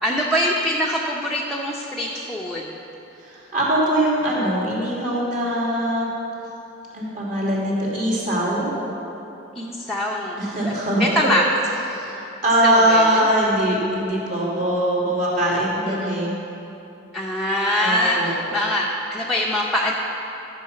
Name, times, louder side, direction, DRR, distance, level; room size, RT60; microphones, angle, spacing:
voice 1, 0.0-2.8 9.5-10.4 10.7-10.8 11.0-11.4 12.6-13.3 15.9-16.2 17.1-19.9, left 1 dB, ahead, -4 dB, 0.8 m, -23 dB
voice 2, 3.2-6.1 6.9-8.7 10.4-11.0 11.9-16.3 17.8-18.3, right 1 dB, 45° right, -6 dB, 2.9 m, -22 dB
13.5 x 7.4 x 5.8 m, 3.0 s
head